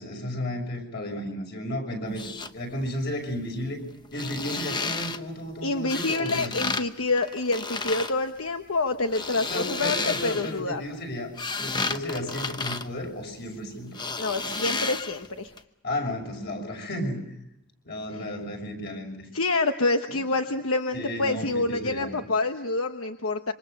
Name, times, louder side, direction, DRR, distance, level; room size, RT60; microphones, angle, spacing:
voice 1, 0.0-3.8 4.1-6.5 9.5-11.3 11.6-14.0 15.8-17.2 17.8-19.3 20.1-20.2 20.9-22.2, equal, 50° left, 3 dB, 6.4 m, -33 dB
sound 1, 2.0-2.5 4.0-5.2 5.9-6.8 7.1-8.1 8.9-10.6 11.1-13.6 13.9-15.3 15.6-15.7, left 4 dB, 20° left, 0.9 m, -32 dB
voice 2, 5.6-10.8 14.1-15.5 19.3-23.5, left 3 dB, 80° left, 6 dB, 1.2 m, -27 dB
27.0 x 25.0 x 6.7 m, 0.85 s
head